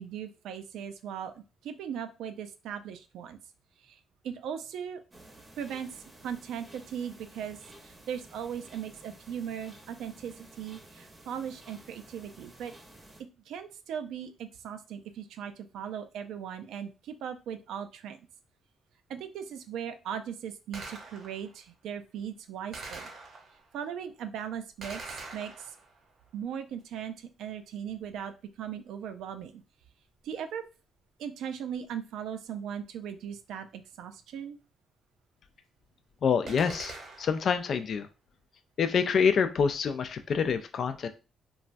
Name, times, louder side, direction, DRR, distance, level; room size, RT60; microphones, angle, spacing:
voice 1, 0.0-3.4 3.8-3.9 4.2-5.0 5.6-5.9 6.2-7.6 7.8-12.7 13.5-18.2 19.1-23.0 23.7-25.0 25.3-25.7 26.3-28.3 28.6-29.6 30.2-30.6 31.2-34.6, right 8 dB, 85° right, 9 dB, 0.3 m, -38 dB
sound 1, 5.1-13.2, right 1 dB, 25° right, 0.7 m, -53 dB
Gunshot gunfire, 20.7-21.5 22.7-23.7 24.8-26.1 36.5-37.5, right 3 dB, 60° right, 0.7 m, -43 dB
voice 2, 36.2-38.1 38.8-41.1, left 6 dB, 55° left, 9 dB, 0.3 m, -27 dB
3.1 x 2.3 x 2.5 m, 0.32 s
cardioid pair, 90°, 0 cm